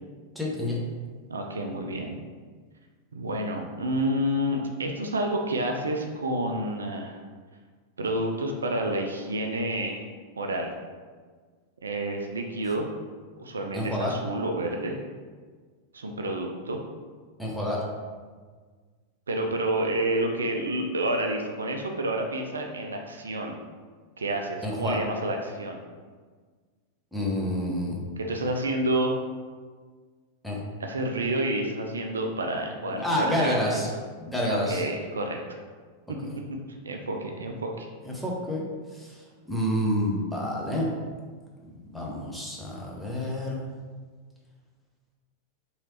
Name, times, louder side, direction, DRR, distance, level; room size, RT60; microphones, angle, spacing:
voice 1, 0.4-0.8 13.7-14.1 17.4-17.8 24.6-25.0 27.1-28.0 30.4-30.6 33.0-33.9 34.2-34.8 38.0-38.6 39.0-39.1 39.5-40.9 41.6-43.6, left 1 dB, ahead, -4 dB, 0.7 m, -28 dB
voice 2, 1.3-2.2 3.1-7.2 8.0-10.1 10.4-10.7 11.8-12.9 13.4-15.0 15.9-16.8 19.3-23.6 24.2-25.8 28.2-29.2 30.8-33.8 34.4-35.4 36.3-36.6 36.8-37.9, right 1 dB, 70° right, 3 dB, 0.3 m, -29 dB
3.0 x 2.8 x 2.9 m, 1.5 s
figure-of-eight pair, 90°, 0 cm